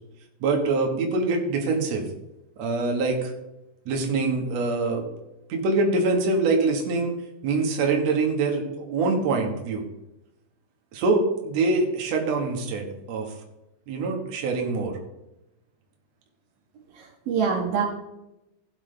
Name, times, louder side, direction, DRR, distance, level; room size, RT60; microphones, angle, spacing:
voice 1, 0.4-2.1 2.6-3.3 3.8-5.1 5.5-7.1 7.4-9.8 10.9-13.3 13.9-15.0, right 3 dB, 80° right, 1 dB, 1.5 m, -24 dB
voice 2, 16.7-17.8, right 6 dB, 55° right, -1 dB, 3.1 m, -26 dB
16.0 x 7.3 x 3.4 m, 0.91 s
omnidirectional pair, 5.6 m